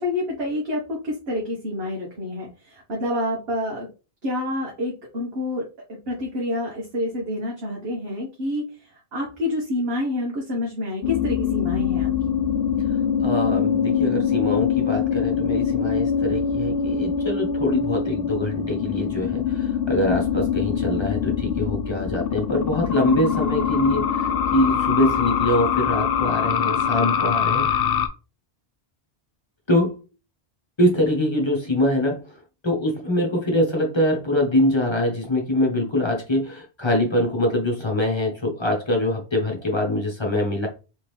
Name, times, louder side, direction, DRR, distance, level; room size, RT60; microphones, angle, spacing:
voice 1, 0.0-3.9 4.2-5.6 6.1-8.6 9.1-12.1, left 1 dB, 70° right, -3 dB, 1.4 m, -28 dB
sound 1, 11.0-28.1, left 7 dB, 65° left, 0.8 m, -23 dB
voice 2, 12.9-27.9 29.7-30.0 30.8-40.7, left 1 dB, 25° left, -1 dB, 1.2 m, -24 dB
3.7 x 3.4 x 3.2 m, 0.32 s
omnidirectional pair, 1.1 m